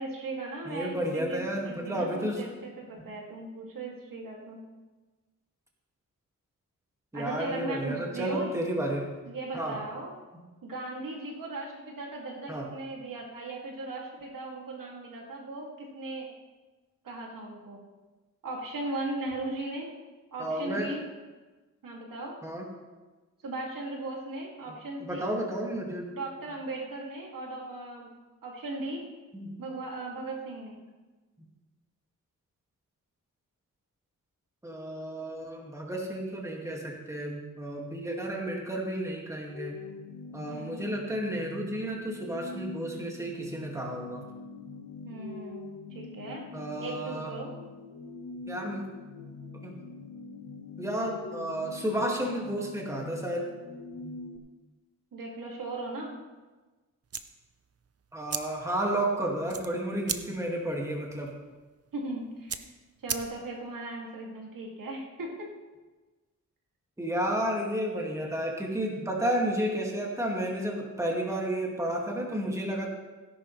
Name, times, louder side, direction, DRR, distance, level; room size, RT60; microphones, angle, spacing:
voice 1, 0.0-4.6 7.1-8.5 9.3-10.1 10.6-16.3 17.0-17.8 18.4-19.9 20.3-21.0 21.8-22.4 23.4-25.3 26.1-28.2 28.4-29.1 29.6-30.8 40.5-40.8 45.0-46.5 46.7-47.5 55.1-56.1 61.9-62.6 63.0-65.5, right 2 dB, 80° right, -1 dB, 2.5 m, -37 dB
voice 2, 0.7-2.4 7.1-9.1 9.5-9.8 12.5-12.7 20.4-21.0 22.4-22.7 25.1-26.1 29.3-29.6 34.6-39.7 40.3-44.2 46.5-47.3 48.5-48.9 49.6-49.8 50.8-53.5 54.0-54.1 58.1-61.3 67.0-72.9, right 1 dB, 10° right, -1 dB, 2.1 m, -32 dB
sound 1, 39.5-54.4, left 4 dB, 80° left, 1.4 m, -44 dB
sound 2, 57.0-63.7, right 7 dB, 45° right, 0.7 m, -39 dB
17.5 x 10.5 x 3.3 m, 1.2 s
wide cardioid pair, 120°, 33 cm